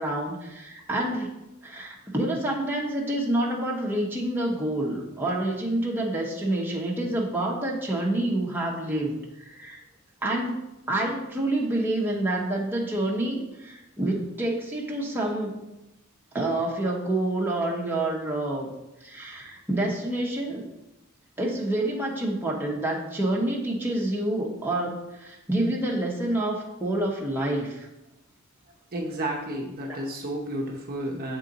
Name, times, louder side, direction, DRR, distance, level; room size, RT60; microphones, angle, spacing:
voice 1, 0.0-1.3 1.6-9.8 10.2-10.6 10.9-15.5 16.3-18.7 19.0-20.6 21.4-27.9 29.9-30.0, right 1 dB, 10° right, -3 dB, 0.9 m, -28 dB
voice 2, 28.9-31.4, right 1 dB, 40° right, -1 dB, 0.7 m, -31 dB
7.3 x 3.8 x 3.9 m, 0.94 s
head